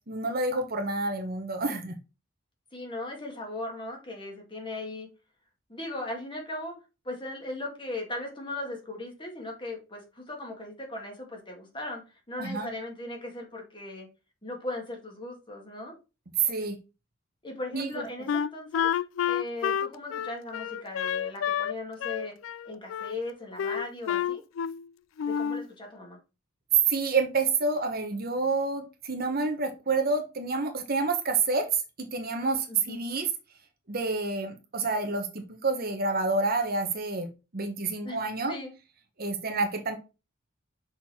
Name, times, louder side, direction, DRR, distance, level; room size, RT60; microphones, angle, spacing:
voice 1, 0.1-2.0 12.4-12.7 16.4-16.8 17.7-18.1 26.9-33.3 33.9-37.3 37.5-38.5 39.2-40.0, right 3 dB, 50° right, 4 dB, 1.1 m, -28 dB
voice 2, 2.7-5.1 5.7-6.7 7.0-12.0 12.3-14.1 14.4-15.9 17.4-18.9 19.2-22.4 22.6-24.4 25.2-26.2 32.7-33.0 38.0-38.7, left 2 dB, 25° left, 1 dB, 2.1 m, -38 dB
Wind instrument woodwind instrument, 18.3-21.7 22.0-23.1 23.6-24.9 25.2-25.7, left 8 dB, 85° left, 0.3 m, -29 dB
6.1 x 4.2 x 4.2 m, 0.29 s
head